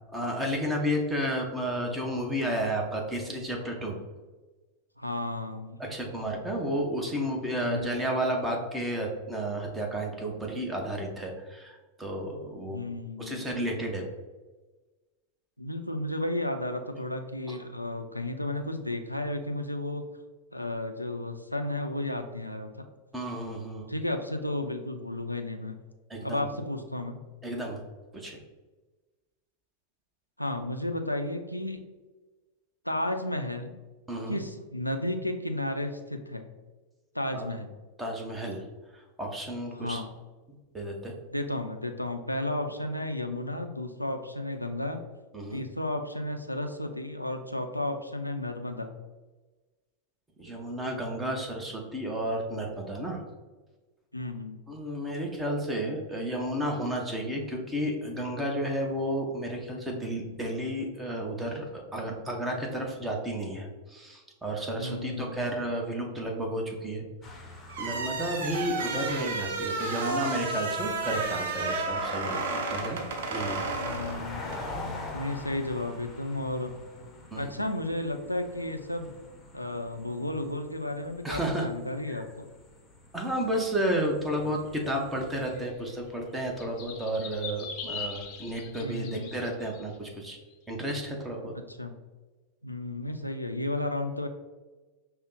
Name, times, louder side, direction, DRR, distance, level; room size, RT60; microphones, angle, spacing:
voice 1, 0.1-4.0 5.8-12.8 13.2-14.1 17.5-17.6 23.1-23.9 26.1-26.5 27.4-27.8 28.1-28.4 34.1-34.4 37.3-37.5 38.0-38.6 39.2-40.0 40.7-41.1 45.3-45.6 50.4-53.2 54.7-67.1 67.4-67.5 67.8-73.0 73.3-73.7 77.3-77.4 81.2-81.7 82.1-82.2 83.1-90.4 90.7-91.5, right 1 dB, 10° right, 0 dB, 0.8 m, -32 dB
voice 2, 5.0-5.9 7.6-8.0 12.7-13.5 15.6-20.0 20.5-22.9 23.9-25.8 26.2-27.2 30.4-31.8 32.8-33.8 34.3-36.4 37.1-37.8 39.7-40.1 41.3-45.0 45.5-48.9 54.1-54.6 64.8-65.4 73.6-74.6 75.1-76.7 77.3-79.1 79.5-82.5 88.8-89.3 91.7-91.9 92.6-94.3, left 1 dB, 85° left, 6 dB, 0.4 m, -33 dB
sound 1, 67.2-85.6, left 2 dB, 15° left, 0.8 m, -45 dB
sound 2, 67.7-74.7, right 3 dB, 60° right, 0.5 m, -32 dB
sound 3, 84.3-89.9, left 6 dB, 40° left, 0.6 m, -41 dB
5.3 x 2.1 x 3.9 m, 1.2 s
figure-of-eight pair, 90°, 0 cm